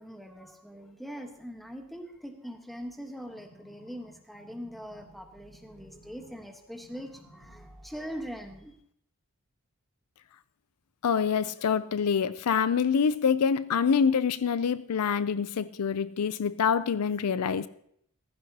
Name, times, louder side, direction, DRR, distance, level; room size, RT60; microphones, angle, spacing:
voice 1, 0.0-8.7, equal, ahead, 4 dB, 1.3 m, -42 dB
sound 1, 3.3-6.4 6.7-7.7 8.3-8.4, right 1 dB, 65° left, 4.7 m, -56 dB
voice 2, 11.0-17.7, left 6 dB, 90° left, 16 dB, 0.5 m, -26 dB
15.0 x 14.5 x 2.8 m, 0.69 s
head